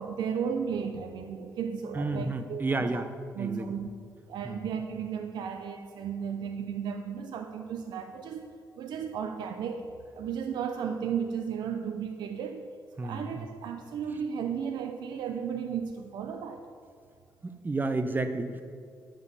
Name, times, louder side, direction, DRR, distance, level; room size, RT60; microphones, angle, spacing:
voice 1, 0.0-3.0 3.4-3.9 4.3-8.5 8.8-9.8 10.1-12.6 12.9-16.6, right 7 dB, 80° right, 6 dB, 0.6 m, -34 dB
voice 2, 1.9-3.1 3.4-3.7 4.4-4.6 13.0-13.5 17.4-18.6, right 3 dB, 25° right, 9 dB, 0.9 m, -31 dB
10.0 x 5.5 x 8.2 m, 2.3 s
cardioid pair, 75°, 7 cm